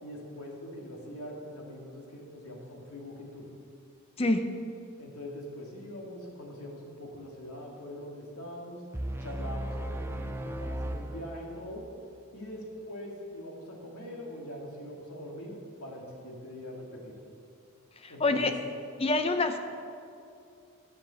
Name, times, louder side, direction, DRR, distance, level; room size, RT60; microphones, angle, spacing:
voice 1, 0.0-3.5 5.0-8.8 9.2-11.8 12.3-17.2 18.1-18.5, left 1 dB, 80° left, -1 dB, 2.3 m, -43 dB
voice 2, 4.2-4.5 18.0-18.5 19.0-19.6, left 2 dB, 25° left, 7 dB, 0.7 m, -26 dB
sound 1, 8.9-11.9, right 1 dB, 10° right, 0.4 m, -36 dB
11.0 x 7.3 x 7.0 m, 2.5 s
head